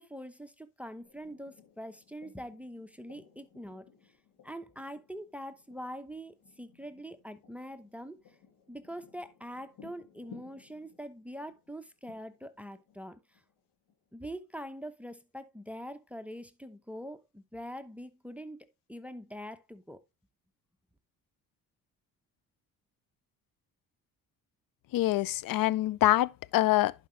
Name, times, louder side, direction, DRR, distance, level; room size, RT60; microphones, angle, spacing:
voice 1, 0.0-3.9 4.4-8.2 8.7-13.4 14.1-20.0, equal, 5° right, 0.9 m, -44 dB
sound 1, 1.0-14.1, left 7 dB, 75° left, 2.4 m, -59 dB
voice 2, 24.9-26.9, left 15 dB, 55° left, 0.5 m, -25 dB
11.0 x 4.9 x 3.1 m
supercardioid pair, 60°, 40 cm